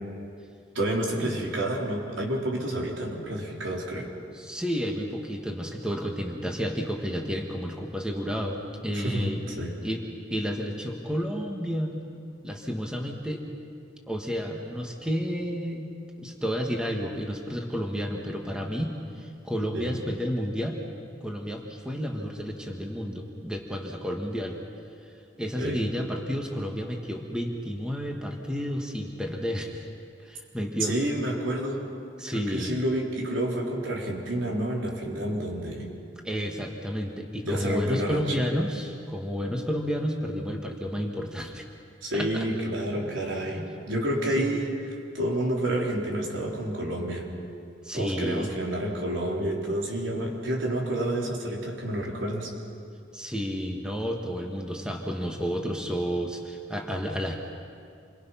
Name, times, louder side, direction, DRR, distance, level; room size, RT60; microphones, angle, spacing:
voice 1, 0.7-4.1 8.9-9.7 19.7-19.9 25.6-25.9 30.8-31.9 32.3-35.9 37.4-38.4 42.0-44.7 45.1-47.2 47.9-52.5, right 1 dB, 80° right, -2 dB, 4.1 m, -29 dB
voice 2, 4.3-9.4 9.8-10.0 10.3-11.9 12.4-13.4 14.1-15.9 16.2-20.8 21.2-24.6 25.4-29.9 30.2-30.9 32.2-32.8 36.2-41.6 42.1-42.4 43.6-43.7 44.3-44.6 47.8-48.5 53.1-57.4, equal, 5° right, 1 dB, 1.7 m, -31 dB
28.0 x 23.5 x 5.8 m, 2.4 s
head